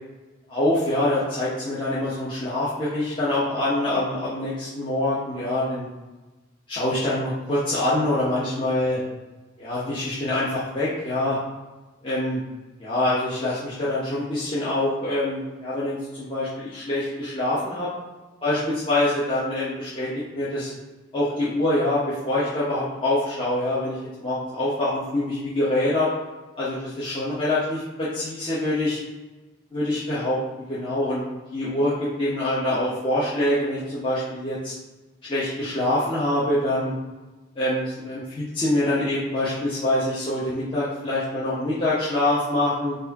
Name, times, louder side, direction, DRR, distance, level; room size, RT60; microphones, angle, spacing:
voice 1, 0.5-5.9 6.7-9.0 9.6-11.4 12.0-12.4 12.8-17.9 18.4-20.7 21.1-26.1 26.6-29.0 29.7-30.4 30.7-31.2 31.5-34.7 35.2-36.9 37.6-43.0, left 1 dB, 25° left, -10 dB, 0.9 m, -25 dB
4.6 x 2.6 x 4.0 m, 1.2 s
head